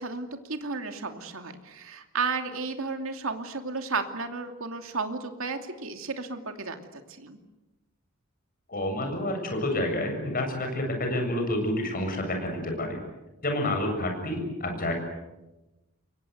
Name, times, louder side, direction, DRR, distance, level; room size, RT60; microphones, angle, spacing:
voice 1, 0.0-7.4, right 4 dB, 70° right, 6 dB, 2.6 m, -33 dB
voice 2, 8.7-13.0 13.4-14.9, left 1 dB, 45° left, 4 dB, 7.5 m, -29 dB
28.0 x 23.5 x 8.1 m, 1.0 s
head